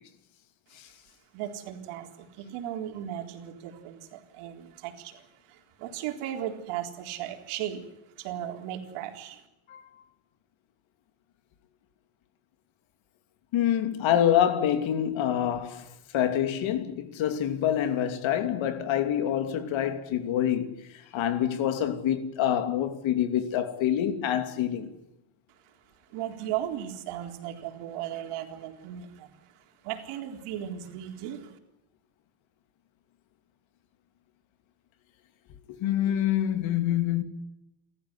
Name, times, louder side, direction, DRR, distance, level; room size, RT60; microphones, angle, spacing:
voice 1, 1.3-9.4 25.5-25.8 26.1-31.6, right 11 dB, 85° right, 4.1 m, -37 dB
voice 2, 13.5-15.9 16.1-20.8 21.1-24.9 35.8-37.2, left 10 dB, 65° left, 2.9 m, -26 dB
30.0 x 14.0 x 9.9 m
cardioid pair, 130°, 50 cm